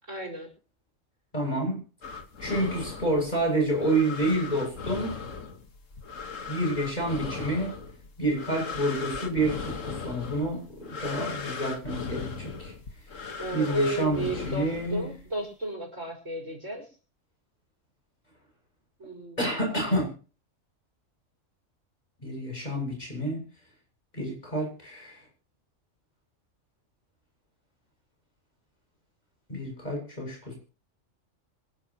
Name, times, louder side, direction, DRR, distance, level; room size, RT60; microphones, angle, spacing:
voice 1, 0.1-0.5 13.4-16.9 19.0-19.4, right 1 dB, 80° right, 3 dB, 5.3 m, -33 dB
voice 2, 1.3-1.8 2.4-5.2 6.5-7.8 8.2-12.7 13.5-15.0 19.4-20.1 22.2-23.4 24.1-25.2 29.5-30.6, right 1 dB, 35° left, 0 dB, 7.5 m, -29 dB
sound 1, 2.0-15.3, left 5 dB, 85° left, 2.0 m, -38 dB
26.0 x 11.5 x 3.1 m, 0.37 s
omnidirectional pair, 1.3 m